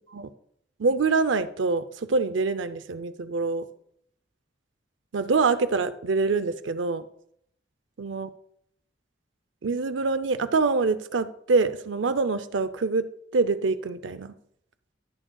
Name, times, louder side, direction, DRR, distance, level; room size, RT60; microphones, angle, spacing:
voice 1, 0.8-3.7 5.1-7.1 8.0-8.3 9.6-13.1 13.3-14.3, right 4 dB, 85° right, 13 dB, 0.5 m, -25 dB
15.5 x 6.3 x 2.3 m, 0.70 s
head